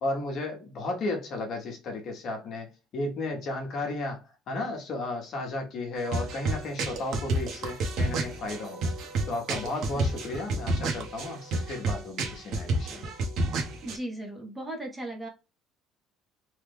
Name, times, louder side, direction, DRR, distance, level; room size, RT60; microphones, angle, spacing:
voice 1, 0.0-8.8 9.3-13.1, left 2 dB, 40° left, 1.0 m, -34 dB
sound 1, 6.0-14.0, right 2 dB, 50° right, 0.8 m, -30 dB
voice 2, 13.8-15.3, right 1 dB, 10° right, 0.7 m, -37 dB
3.1 x 2.2 x 3.4 m
cardioid pair, 165°, 0 cm